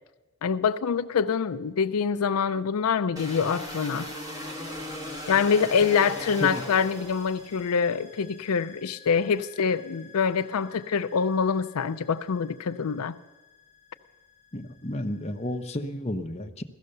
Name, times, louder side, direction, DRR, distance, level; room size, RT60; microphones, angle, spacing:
voice 1, 0.4-4.1 5.3-13.2, left 6 dB, 85° left, 11 dB, 0.5 m, -25 dB
sound 1, 3.2-7.7, left 1 dB, 15° right, 1.4 m, -38 dB
sound 2, 3.6-15.8, left 3 dB, 60° right, 5.7 m, -54 dB
voice 2, 14.5-16.6, left 1 dB, 30° left, 3 dB, 0.8 m, -32 dB
16.5 x 13.5 x 6.7 m, 1.1 s
head